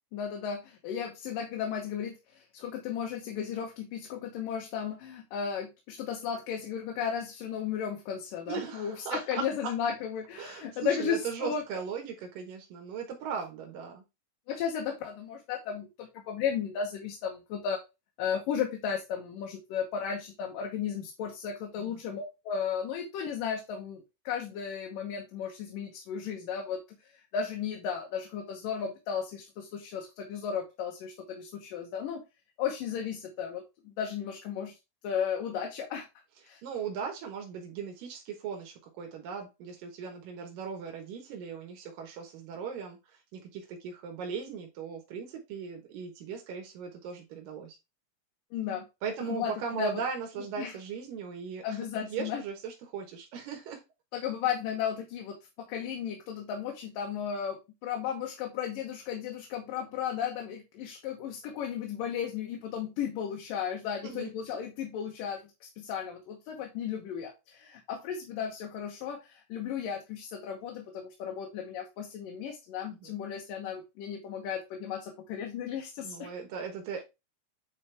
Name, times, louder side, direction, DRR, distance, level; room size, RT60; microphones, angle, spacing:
voice 1, 0.1-11.6 14.5-17.8 18.2-32.2 32.6-34.7 35.0-36.1 36.4-36.6 48.5-48.8 49.3-49.5 49.8-49.9 50.6-50.8 51.6-52.4 54.1-76.3, left 7 dB, 85° left, 2 dB, 2.8 m, -35 dB
voice 2, 8.5-9.7 10.4-14.0 21.8-22.0 36.6-43.0 43.3-47.8 49.0-53.8 64.0-64.6 73.0-73.2 76.0-77.0, right 6 dB, 85° right, 3 dB, 3.0 m, -38 dB
9.4 x 4.1 x 3.4 m, 0.25 s
omnidirectional pair, 3.8 m